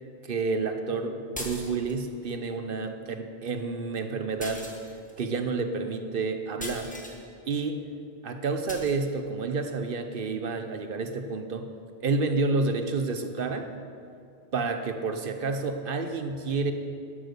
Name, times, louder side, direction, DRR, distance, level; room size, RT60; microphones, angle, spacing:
voice 1, 0.3-4.7 5.2-6.9 7.5-7.8 8.2-11.7 12.0-13.7 14.5-16.7, right 4 dB, 60° right, 7 dB, 1.0 m, -29 dB
sound 1, 1.3-2.1 4.4-5.2 6.6-7.2 8.7-9.0, equal, 10° left, 1.3 m, -39 dB
12.0 x 8.1 x 6.7 m, 2.4 s
omnidirectional pair, 1.1 m